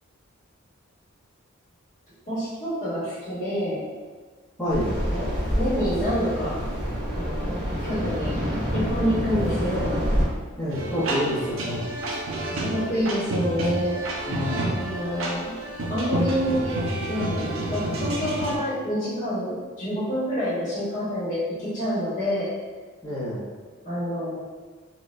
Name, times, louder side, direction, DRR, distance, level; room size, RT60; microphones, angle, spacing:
voice 1, 2.3-3.8 4.6-4.8 5.1-6.6 7.1-8.3 8.7-10.0 12.5-14.0 14.6-15.5 15.9-16.7 17.0-22.5 23.8-24.4, equal, 35° left, -11 dB, 1.0 m, -27 dB
voice 2, 4.6-4.9 10.6-12.0 14.3-14.8 23.0-23.5, equal, 10° left, -15 dB, 0.7 m, -28 dB
sound 1, 4.7-10.3, equal, 30° right, 1.1 m, -27 dB
sound 2, 10.7-18.6, right 1 dB, 65° right, 0.5 m, -29 dB
4.2 x 2.2 x 2.4 m, 1.4 s
head